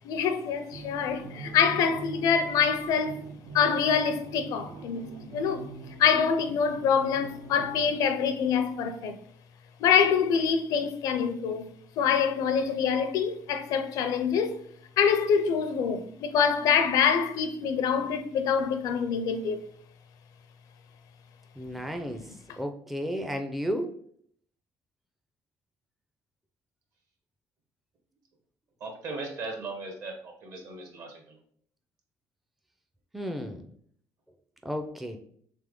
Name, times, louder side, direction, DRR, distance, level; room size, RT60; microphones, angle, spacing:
voice 1, 0.1-3.2 3.5-5.7 6.0-9.1 9.8-14.6 15.0-19.7, left 7 dB, 75° left, 0.5 m, -25 dB
sound 1, 0.7-8.9, right 4 dB, 85° right, 0.7 m, -44 dB
voice 2, 21.6-22.2 22.6-23.9 33.1-33.6 34.6-35.2, equal, 5° right, 0.4 m, -33 dB
voice 3, 28.8-31.4, right 3 dB, 60° right, 1.2 m, -38 dB
3.4 x 3.2 x 3.7 m
cardioid pair, 115°, 6 cm